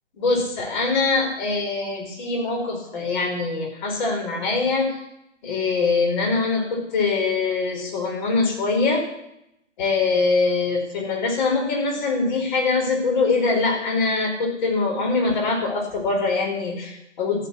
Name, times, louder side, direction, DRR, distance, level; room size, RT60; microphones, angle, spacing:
voice 1, 0.1-5.0 5.4-9.0 9.8-17.5, left 3 dB, 35° left, 1 dB, 4.5 m, -23 dB
13.5 x 10.0 x 7.4 m, 0.82 s
hypercardioid pair, 150°, 37 cm